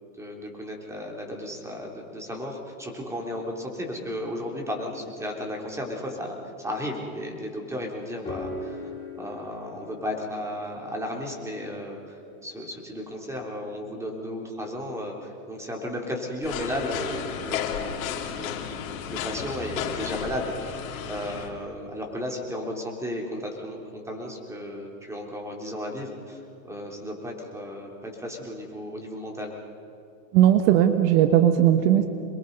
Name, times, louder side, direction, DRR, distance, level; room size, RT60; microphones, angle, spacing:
voice 1, 0.2-6.3 6.6-12.0 12.4-18.0 18.3-29.5, equal, 5° right, 0 dB, 3.7 m, -34 dB
sound 1, 8.0-13.0, left 2 dB, 10° left, 4.8 m, -41 dB
sound 2, 16.4-21.5, left 8 dB, 70° left, 2.8 m, -33 dB
voice 2, 30.3-32.1, right 11 dB, 55° right, 7 dB, 1.3 m, -18 dB
27.5 x 22.0 x 5.5 m, 2.6 s
supercardioid pair, 130°, 42 cm